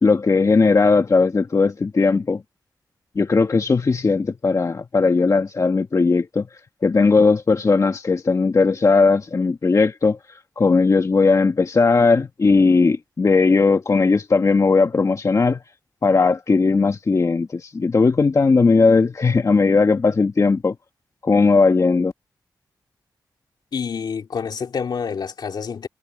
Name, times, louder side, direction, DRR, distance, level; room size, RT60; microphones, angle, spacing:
voice 1, 0.0-2.4 3.2-6.5 6.8-15.6 16.0-20.8 21.2-22.1, left 4 dB, 45° left, 1.7 m, -18 dB
voice 2, 23.7-25.9, left 6 dB, 75° left, 2.8 m, -27 dB
cardioid pair, 75°, 7 cm